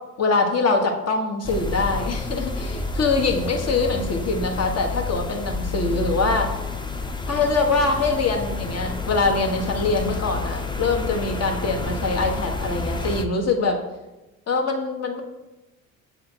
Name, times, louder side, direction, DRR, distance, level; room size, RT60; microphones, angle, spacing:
voice 1, 0.2-6.5 7.3-13.8 14.5-15.2, left 3 dB, 40° left, 2 dB, 1.3 m, -23 dB
sound 1, 1.4-13.2, left 3 dB, 10° left, 0.6 m, -29 dB
8.0 x 3.6 x 4.4 m, 1.1 s
figure-of-eight pair, 55°, 40 cm